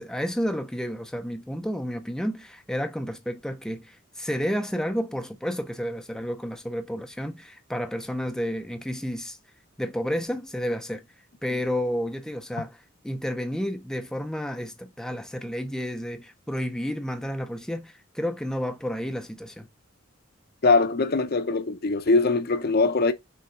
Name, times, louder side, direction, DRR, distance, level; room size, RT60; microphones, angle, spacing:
voice 1, 0.0-9.4 9.8-11.0 11.4-19.7, equal, 5° left, 0.5 m, -31 dB
voice 2, 20.6-23.1, left 3 dB, 50° left, 0.7 m, -22 dB
6.4 x 3.5 x 4.5 m
head